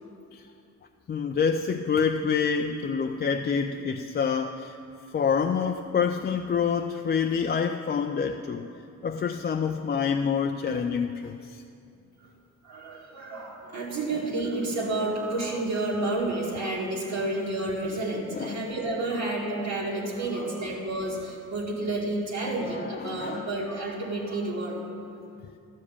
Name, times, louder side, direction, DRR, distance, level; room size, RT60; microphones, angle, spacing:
voice 1, 1.1-4.8 5.1-8.7 9.0-11.6 14.1-14.2 18.1-18.7 22.4-23.5, left 6 dB, 35° left, 4 dB, 0.5 m, -27 dB
voice 2, 12.6-24.8, right 2 dB, 65° right, -5 dB, 2.1 m, -30 dB
12.0 x 5.0 x 8.4 m, 2.5 s
cardioid pair, 90°, 30 cm